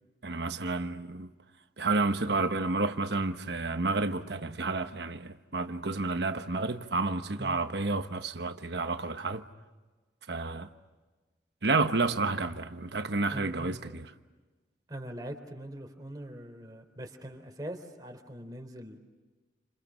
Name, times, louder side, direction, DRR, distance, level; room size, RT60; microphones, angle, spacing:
voice 1, 0.2-1.3 1.8-9.4 10.3-10.7 11.6-14.1, right 3 dB, 65° right, 1.1 m, -30 dB
voice 2, 13.3-14.0 14.9-19.0, right 1 dB, 20° right, 3.7 m, -42 dB
30.0 x 27.5 x 6.4 m
head